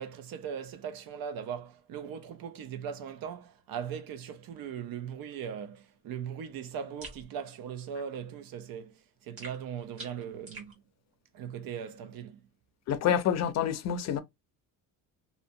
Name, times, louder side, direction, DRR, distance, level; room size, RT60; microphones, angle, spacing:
voice 1, 0.0-10.7 11.3-12.4, right 8 dB, 75° right, 0.6 m, -39 dB
sound 1, 7.0-7.2 9.4-10.7, right 2 dB, 40° right, 1.3 m, -46 dB
voice 2, 12.9-14.2, left 9 dB, 50° left, 0.4 m, -27 dB
2.7 x 2.1 x 2.6 m
cardioid pair, 165°, 35 cm